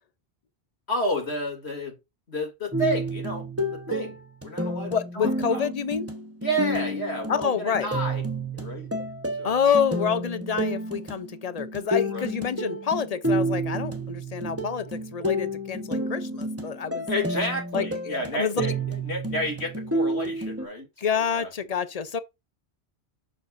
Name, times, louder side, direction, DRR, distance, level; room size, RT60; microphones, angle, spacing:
voice 1, 0.9-2.0 2.3-5.7 6.4-8.2 8.5-8.9 9.3-9.5 12.1-12.3 17.1-20.9 21.1-21.5, equal, 75° left, 3.2 m, -31 dB
sound 1, 2.7-20.7, right 1 dB, 15° right, 1.3 m, -30 dB
voice 2, 4.9-6.1 7.3-7.9 9.4-17.1 17.7-18.7 21.0-22.2, left 7 dB, 40° left, 0.8 m, -27 dB
7.4 x 6.2 x 2.7 m
omnidirectional pair, 1.1 m